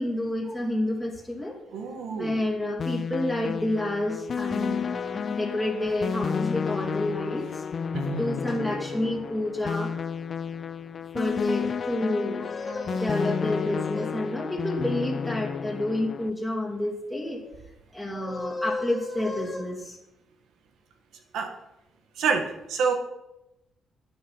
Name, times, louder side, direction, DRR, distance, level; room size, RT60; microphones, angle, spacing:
voice 1, 0.0-1.6 2.1-7.6 8.1-9.9 11.1-17.5 17.9-20.0, left 1 dB, 5° right, -3 dB, 2.6 m, -29 dB
voice 2, 1.7-2.4 7.9-8.4 21.3-21.5 22.2-22.9, right 5 dB, 85° right, 5 dB, 1.8 m, -28 dB
sound 1, 2.8-16.3, left 6 dB, 45° left, 0.4 m, -31 dB
10.5 x 8.9 x 5.7 m, 0.90 s
cardioid pair, 105°, 0 cm